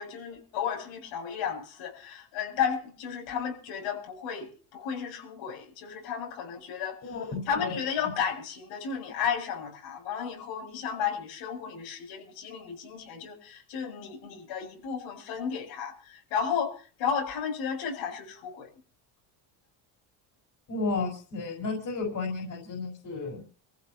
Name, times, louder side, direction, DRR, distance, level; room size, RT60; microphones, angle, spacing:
voice 1, 0.0-7.0 7.5-18.7, left 7 dB, 80° left, 7.8 m, -33 dB
voice 2, 7.0-7.8 8.0-8.1 20.7-23.4, left 3 dB, 40° left, 5.2 m, -33 dB
25.5 x 15.0 x 2.9 m
cardioid pair, 110°, 46 cm